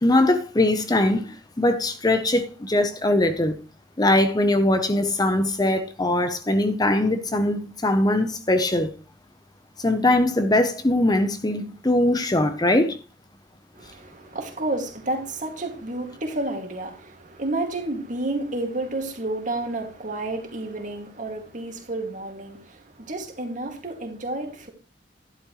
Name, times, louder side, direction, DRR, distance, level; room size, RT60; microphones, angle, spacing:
voice 1, 0.0-3.6 4.0-8.9 9.8-13.0, left 1 dB, 20° left, 0.8 m, -21 dB
voice 2, 13.7-24.7, right 2 dB, 45° right, 2.2 m, -30 dB
11.5 x 11.0 x 3.1 m
head